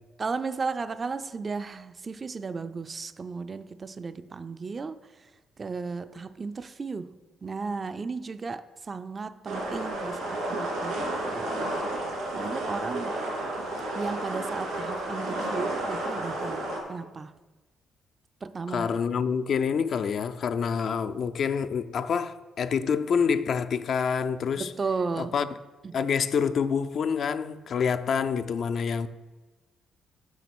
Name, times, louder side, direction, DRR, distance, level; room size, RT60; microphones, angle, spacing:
voice 1, 0.2-5.0 5.6-11.5 12.4-13.2 13.9-16.6 16.9-17.3 18.4-19.0 24.6-25.4 25.8-26.0, right 4 dB, 35° right, 0.3 m, -34 dB
sound 1, 9.5-16.8, right 1 dB, 85° right, 2.4 m, -31 dB
voice 2, 18.7-24.7 25.2-25.5 25.9-29.1, left 6 dB, 60° left, 0.4 m, -27 dB
7.1 x 5.7 x 6.1 m
cardioid pair, 90°, 0 cm